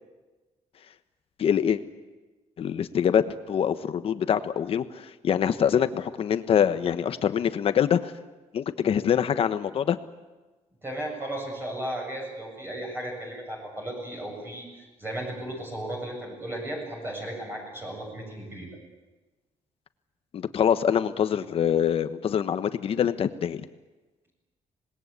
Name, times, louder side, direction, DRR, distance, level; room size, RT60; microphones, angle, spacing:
voice 1, 1.4-1.8 2.6-8.1 8.5-10.0 20.3-23.7, left 8 dB, 55° left, 11 dB, 1.3 m, -24 dB
voice 2, 10.8-18.7, right 1 dB, 20° right, 0 dB, 7.5 m, -35 dB
26.5 x 20.5 x 8.3 m, 1.2 s
cardioid pair, 140°, 12 cm